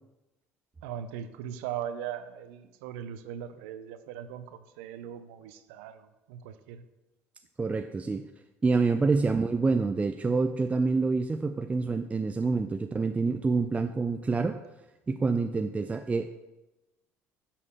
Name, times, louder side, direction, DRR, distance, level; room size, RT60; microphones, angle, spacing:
voice 1, 0.8-6.8, right 9 dB, 80° right, 11 dB, 0.5 m, -39 dB
voice 2, 7.6-8.3 8.6-14.6 15.1-16.3, right 4 dB, 20° right, 8 dB, 0.4 m, -27 dB
7.1 x 4.2 x 5.4 m, 1.0 s
hypercardioid pair, 75°, 7 cm